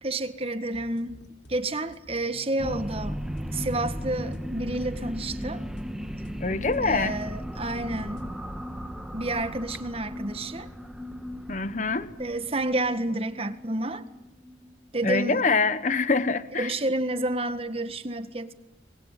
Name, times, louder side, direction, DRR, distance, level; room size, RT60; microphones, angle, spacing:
voice 1, 0.0-1.2 1.5-3.2 3.5-5.6 6.8-8.2 9.1-10.7 12.2-14.0 14.9-15.4 16.3-18.5, right 2 dB, 30° right, 10 dB, 1.6 m, -30 dB
sound 1, 0.7-8.3, equal, 70° left, 3.7 m, -51 dB
sound 2, 2.6-15.4, equal, 5° right, 1.2 m, -36 dB
voice 2, 6.4-7.2 11.5-12.1 15.0-16.7, left 4 dB, 40° left, 13 dB, 1.0 m, -25 dB
25.0 x 21.5 x 9.2 m, 0.89 s
head